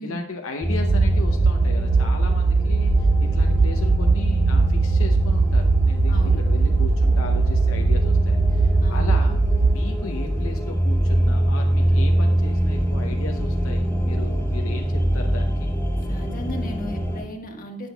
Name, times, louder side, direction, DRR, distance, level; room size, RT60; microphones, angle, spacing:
voice 1, 0.0-9.4 9.6-15.7, left 3 dB, 70° left, 2 dB, 0.8 m, -36 dB
sound 1, 0.6-17.2, equal, 10° left, 1.8 m, -23 dB
sound 2, 0.9-9.8, right 4 dB, 50° right, 0.5 m, -20 dB
voice 2, 6.1-6.4 8.8-9.1 16.0-17.9, left 1 dB, 40° left, 2 dB, 1.5 m, -35 dB
18.0 x 6.1 x 2.3 m, 0.89 s
head